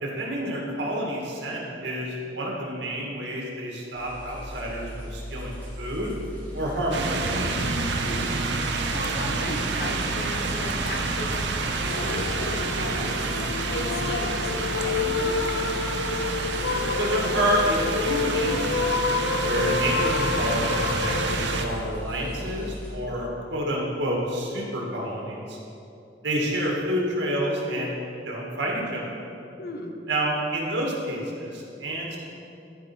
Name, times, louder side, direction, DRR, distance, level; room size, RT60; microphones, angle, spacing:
voice 1, 0.0-6.1 6.5-7.7 16.9-25.6 26.2-28.0 28.2-29.2 30.1-32.2, equal, 90° right, -2 dB, 2.0 m, -29 dB
sound 1, 3.9-23.0, equal, 10° left, 1.9 m, -38 dB
sound 2, 6.9-21.7, right 3 dB, 70° right, 0.7 m, -29 dB
voice 2, 8.0-8.4 8.9-13.2 13.7-15.4 29.6-30.0, left 1 dB, 60° left, 2 dB, 1.0 m, -36 dB
sound 3, 11.8-22.8, left 4 dB, 75° left, 0.4 m, -29 dB
13.0 x 5.3 x 4.5 m, 2.6 s
head